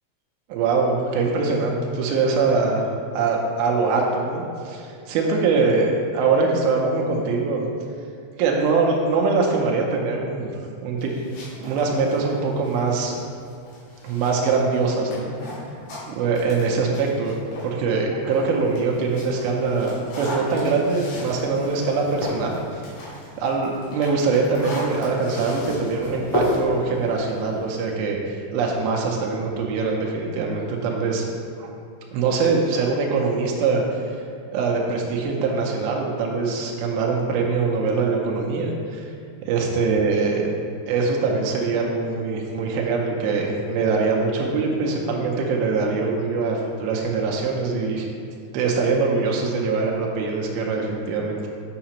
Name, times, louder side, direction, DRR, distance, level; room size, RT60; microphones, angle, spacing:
voice 1, 0.5-2.8 3.1-7.7 8.4-11.1 11.4-13.1 14.0-15.4 16.1-17.4 17.6-22.9 23.4-31.3 31.6-31.7 32.1-34.0 34.5-39.0 39.5-40.5 40.9-48.1 48.5-51.5, right 4 dB, 90° right, -1 dB, 2.5 m, -23 dB
sound 1, 11.0-17.8 18.2-27.9, left 1 dB, 60° left, 2.4 m, -34 dB
7.3 x 5.7 x 2.9 m, 2.4 s
omnidirectional pair, 4.3 m